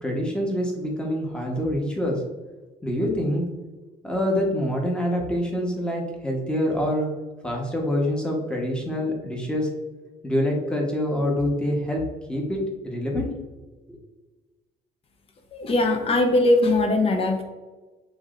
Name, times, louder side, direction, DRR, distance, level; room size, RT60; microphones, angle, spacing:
voice 1, 0.0-2.2 2.8-3.4 4.0-7.1 7.4-9.7 10.2-12.0 12.3-13.3 13.9-14.0, equal, 5° left, -1 dB, 1.1 m, -26 dB
voice 2, 15.5-17.4, left 2 dB, 35° left, 5 dB, 0.8 m, -20 dB
6.9 x 2.8 x 2.4 m, 1.2 s
cardioid pair, 110°, 17 cm